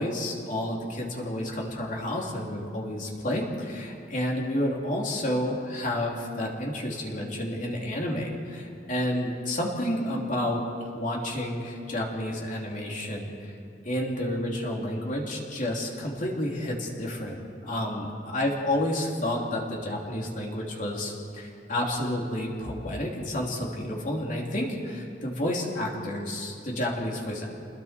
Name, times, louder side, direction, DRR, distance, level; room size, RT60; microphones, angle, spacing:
voice 1, 0.0-10.6 10.9-13.5 13.8-27.5, left 1 dB, 45° left, -1 dB, 3.3 m, -30 dB
29.0 x 20.5 x 4.6 m, 2.5 s
head